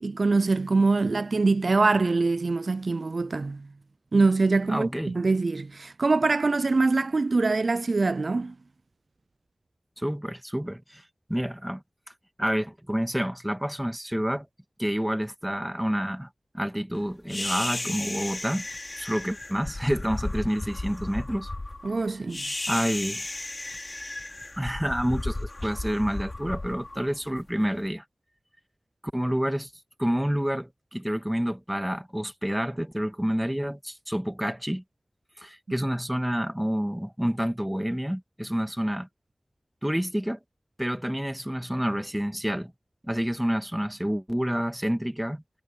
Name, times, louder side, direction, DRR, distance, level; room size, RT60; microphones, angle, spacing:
voice 1, 0.0-3.7 4.1-8.6 21.8-22.5, right 3 dB, 75° right, 0.4 m, -24 dB
voice 2, 4.7-5.2 10.0-11.0 11.3-11.8 12.4-14.5 14.8-16.3 16.5-18.7 19.0-21.5 22.7-23.3 24.6-28.0 29.1-29.7 30.0-34.8 35.4-39.1 39.8-40.4 40.8-42.7 43.0-45.4, equal, 5° right, 2.0 m, -28 dB
sound 1, 17.3-27.7, left 2 dB, 40° left, 3.6 m, -34 dB
wide cardioid pair, 65°, 0 cm